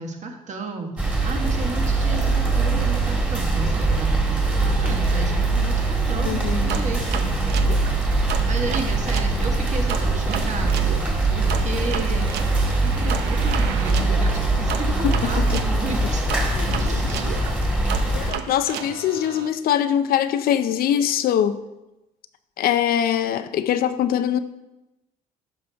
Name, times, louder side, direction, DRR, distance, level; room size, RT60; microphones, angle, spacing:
voice 1, 0.0-7.2 8.5-11.0 11.3-12.3 12.8-16.2 16.8-17.4, right 4 dB, 45° right, 3 dB, 1.4 m, -33 dB
sound 1, 1.0-18.3, right 2 dB, 10° right, 1.9 m, -22 dB
voice 2, 6.2-6.8 15.0-15.6 16.9-17.0 18.1-21.6 22.6-24.4, left 10 dB, 60° left, 11 dB, 0.5 m, -22 dB
sound 2, 6.7-9.3 9.9-15.7 16.3-19.5, right 9 dB, 80° right, 0.7 m, -33 dB
11.5 x 6.0 x 3.4 m, 0.98 s
cardioid pair, 110°, 17 cm